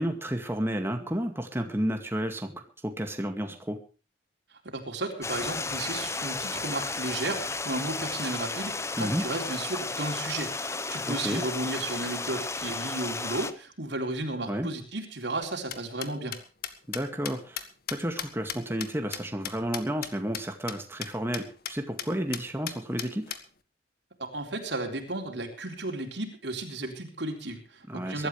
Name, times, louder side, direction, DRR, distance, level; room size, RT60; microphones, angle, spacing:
voice 1, 0.0-3.8 9.0-9.2 11.1-11.4 14.5-14.7 16.9-17.6 17.9-23.3 27.9-28.3, equal, 15° right, 5 dB, 2.1 m, -31 dB
voice 2, 4.6-16.4 24.2-28.3, right 2 dB, 70° right, 2 dB, 3.9 m, -34 dB
Stream, 5.2-13.5, left 3 dB, 15° left, 0.9 m, -33 dB
sound 1, 15.4-20.1 20.3-20.4 20.7-20.8 21.0-21.1 21.3-21.7 22.0-22.1 22.3-23.4, left 9 dB, 55° left, 1.6 m, -35 dB
23.0 x 12.5 x 3.4 m, 0.35 s
head